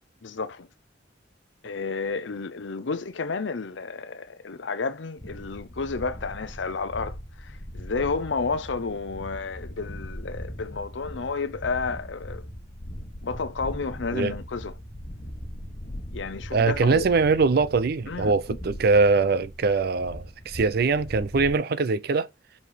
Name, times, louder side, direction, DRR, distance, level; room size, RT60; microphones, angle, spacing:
voice 1, 0.2-0.7 1.6-12.5 13.2-14.7 16.1-17.1 18.1-18.6, left 4 dB, 75° left, 0.7 m, -31 dB
sound 1, 5.2-21.5, equal, 35° left, 1.4 m, -40 dB
voice 2, 16.5-22.3, right 4 dB, 55° right, 0.5 m, -22 dB
4.8 x 4.2 x 5.1 m
head